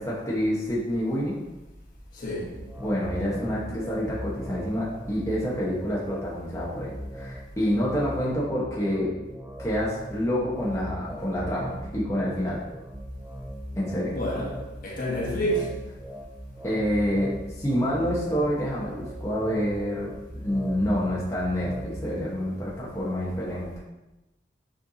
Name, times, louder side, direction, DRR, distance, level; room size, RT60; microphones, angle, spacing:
voice 1, 0.0-1.4 2.8-9.1 9.6-12.6 13.7-14.2 16.6-20.1 20.4-23.8, equal, 15° left, 1.2 m, -27 dB
voice 2, 2.1-2.6 14.1-15.7, equal, 50° left, 1.4 m, -29 dB
sound 1, 2.5-22.1, equal, 10° right, 0.5 m, -39 dB
7.5 x 4.5 x 2.8 m
head